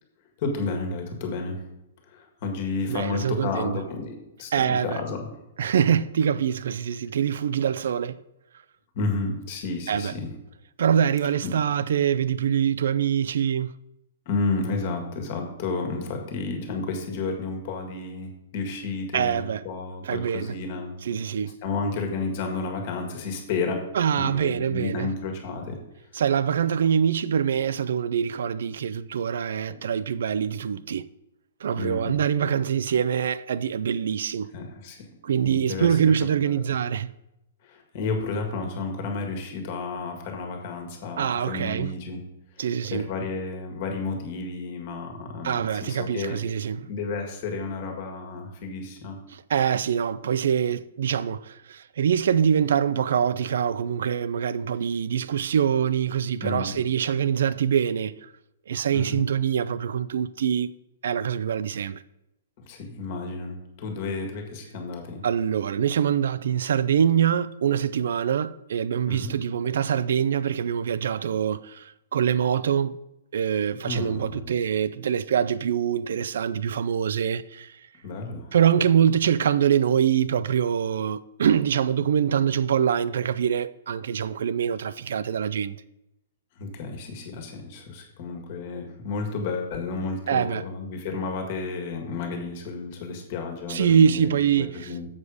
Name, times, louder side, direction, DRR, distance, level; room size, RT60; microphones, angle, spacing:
voice 1, 0.4-1.7 2.1-5.4 9.0-10.3 11.4-11.5 14.3-20.9 21.6-23.8 24.2-25.8 29.7-29.8 31.7-32.2 34.5-35.0 35.4-36.0 36.4-36.7 37.6-42.2 42.6-46.4 46.9-49.2 56.4-56.7 58.9-59.3 62.7-65.2 69.1-69.3 73.8-74.5 78.0-78.5 86.6-95.1, left 3 dB, 40° left, 1.7 m, -32 dB
voice 2, 2.9-3.8 4.5-5.0 5.6-8.2 9.9-10.1 10.8-13.7 19.1-19.6 20.0-20.6 21.0-21.6 23.9-25.1 26.1-31.1 31.6-34.5 35.2-37.1 41.2-41.9 42.6-43.1 45.4-46.9 49.3-58.1 58.7-60.7 61.0-62.0 65.2-73.0 73.3-77.8 78.5-85.8 90.3-90.6 93.7-94.9, right 8 dB, 70° right, 0.4 m, -24 dB
7.3 x 6.3 x 4.9 m
hypercardioid pair, 165°, 0 cm